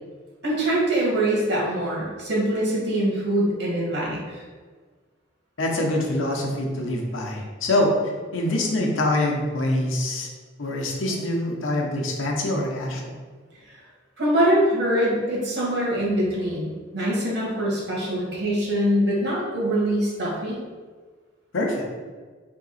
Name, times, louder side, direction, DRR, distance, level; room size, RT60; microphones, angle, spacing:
voice 1, 0.4-4.4 13.7-13.8 14.2-20.6, right 1 dB, 55° right, -4 dB, 1.4 m, -23 dB
voice 2, 5.6-7.9 8.3-10.3 10.6-13.1 21.5-21.9, left 1 dB, 80° left, 0 dB, 0.8 m, -25 dB
3.6 x 2.9 x 4.1 m, 1.5 s
head